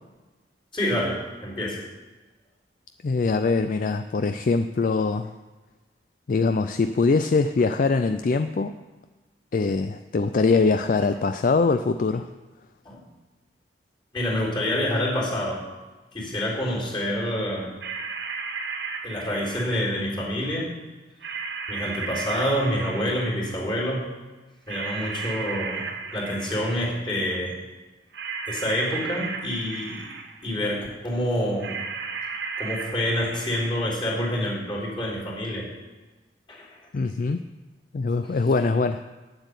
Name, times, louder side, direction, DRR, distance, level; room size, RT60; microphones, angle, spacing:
voice 1, 0.7-1.8 12.9-13.0 14.1-15.7 16.1-17.7 19.0-20.8 21.7-24.1 24.7-27.6 28.5-30.1 30.4-31.8 32.6-35.7 36.5-36.7, equal, 30° left, -4 dB, 3.6 m, -27 dB
voice 2, 3.0-5.3 6.3-8.7 9.5-12.3 36.9-37.4 37.9-39.0, left 4 dB, 50° left, 9 dB, 0.4 m, -23 dB
sound 1, 17.8-20.2 21.2-23.6 24.7-27.1 28.1-30.6 31.6-34.0 35.1-35.2, right 5 dB, 70° right, 0.9 m, -34 dB
9.3 x 7.8 x 8.1 m, 1.2 s
head